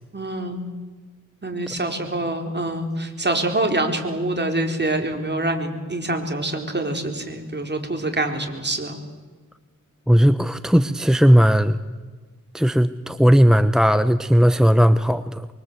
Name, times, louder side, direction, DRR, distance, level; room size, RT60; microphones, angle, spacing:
voice 1, 0.1-0.7 1.4-9.0, right 2 dB, 35° right, 3 dB, 4.4 m, -25 dB
voice 2, 10.1-11.8 12.5-15.5, equal, ahead, 11 dB, 0.9 m, -16 dB
24.5 x 24.0 x 8.2 m, 1.4 s
cardioid pair, 60°, 31 cm